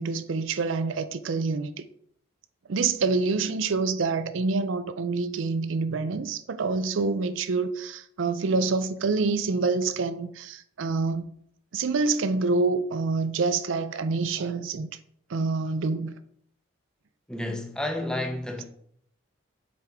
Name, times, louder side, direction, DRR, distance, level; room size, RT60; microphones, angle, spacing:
voice 1, 0.0-1.9 2.7-11.3 11.7-14.9 15.3-16.1, right 4 dB, 70° right, 0.5 m, -27 dB
voice 2, 17.3-18.6, left 1 dB, 5° left, 0.7 m, -31 dB
7.4 x 5.2 x 3.5 m
head